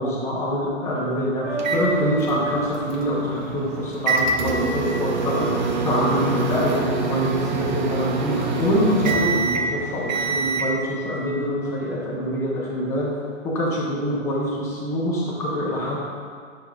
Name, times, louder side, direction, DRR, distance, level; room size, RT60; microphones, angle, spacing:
voice 1, 0.0-13.1 13.4-16.0, equal, 5° left, -6 dB, 0.6 m, -25 dB
sound 1, 1.4-4.3, right 1 dB, 15° right, 1.2 m, -31 dB
sound 2, 1.6-10.7, right 4 dB, 40° right, 0.4 m, -25 dB
6.9 x 6.3 x 2.3 m, 2.1 s
hypercardioid pair, 150°, 39 cm